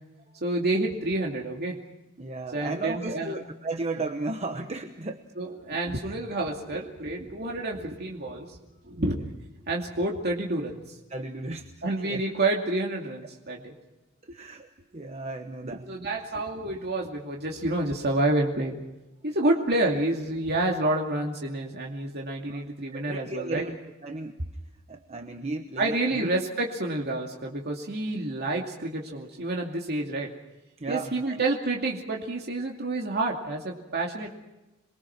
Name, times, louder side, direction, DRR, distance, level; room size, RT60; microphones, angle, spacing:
voice 1, 0.4-1.8 2.5-3.3 5.4-8.6 8.9-9.2 9.7-10.8 11.8-13.7 15.9-18.8 19.2-23.6 25.8-30.3 30.9-34.3, right 2 dB, 50° right, 0 dB, 2.5 m, -28 dB
voice 2, 2.2-5.3 5.7-6.1 7.2-7.6 8.9-9.3 11.1-12.2 14.2-16.0 22.5-22.6 22.9-24.6 24.9-26.3 30.8-31.4, right 3 dB, 30° right, 6 dB, 1.1 m, -35 dB
28.0 x 22.5 x 6.0 m, 1.0 s
head